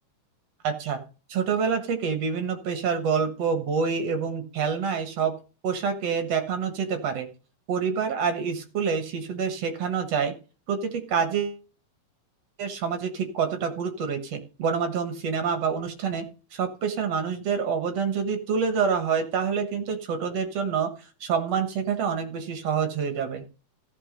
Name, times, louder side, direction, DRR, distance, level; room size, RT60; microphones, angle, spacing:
voice 1, 0.6-1.0 1.3-5.3 5.6-7.3 7.7-10.3 10.7-11.6 12.6-16.2 16.5-20.9 21.2-23.5, right 6 dB, 55° right, 8 dB, 2.2 m, -27 dB
14.5 x 5.9 x 5.1 m, 0.34 s
omnidirectional pair, 3.8 m